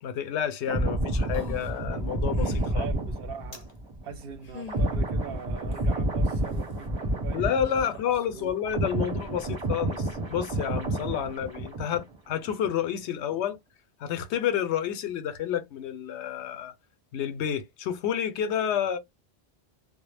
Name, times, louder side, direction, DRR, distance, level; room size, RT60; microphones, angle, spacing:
voice 1, 0.0-2.9 7.3-13.6 14.0-16.7 17.1-19.0, left 9 dB, 85° left, 0.9 m, -30 dB
sound 1, 0.7-8.2 8.4-12.2 12.4-12.7, right 1 dB, 30° right, 0.8 m, -29 dB
sound 2, 1.1-1.8 2.3-2.7 3.5-3.7 4.5-4.9 5.7-5.8, left 5 dB, 45° left, 0.6 m, -40 dB
voice 2, 2.7-3.7 4.0-8.0 8.3-8.5 9.0-9.1, right 6 dB, 65° right, 0.7 m, -42 dB
2.0 x 2.0 x 3.1 m
omnidirectional pair, 1.1 m